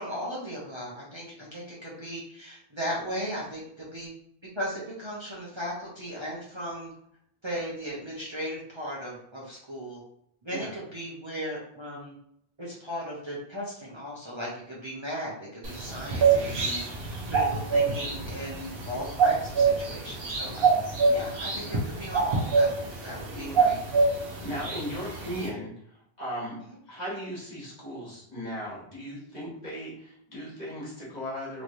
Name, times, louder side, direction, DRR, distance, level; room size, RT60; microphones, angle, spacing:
voice 1, 0.0-4.1 4.5-6.9 7.4-10.0 10.4-12.2 12.6-20.6 21.1-23.8 24.3-24.5, equal, 30° right, -7 dB, 0.8 m, -37 dB
sound 1, 15.6-25.5, right 4 dB, 70° right, 1.0 m, -26 dB
voice 2, 20.5-20.9 21.5-21.9 23.3-23.8 24.4-25.7 26.2-26.6 26.9-31.6, equal, 45° left, -6 dB, 1.4 m, -37 dB
3.1 x 3.1 x 2.6 m, 0.70 s
omnidirectional pair, 1.0 m